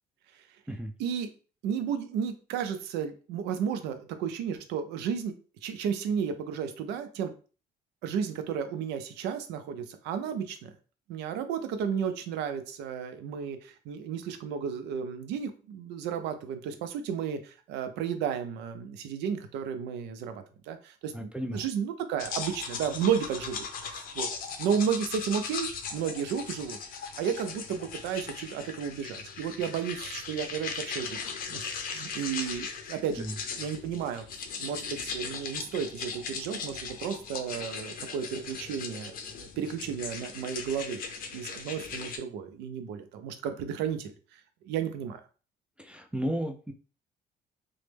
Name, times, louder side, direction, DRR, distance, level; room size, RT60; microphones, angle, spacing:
voice 1, 1.6-5.3 5.6-7.3 8.0-10.7 11.1-24.3 24.6-26.8 27.2-31.2 31.5-33.3 33.5-34.2 34.6-41.0 41.3-44.1 44.7-45.2, right 7 dB, 90° right, 9 dB, 0.5 m, -33 dB
voice 2, 21.1-21.6 33.2-33.3 45.8-46.7, equal, 5° right, 3 dB, 0.3 m, -33 dB
sound 1, 22.2-42.2, left 5 dB, 55° left, 0.5 m, -38 dB
3.0 x 2.1 x 3.3 m, 0.37 s
cardioid pair, 110°, 17 cm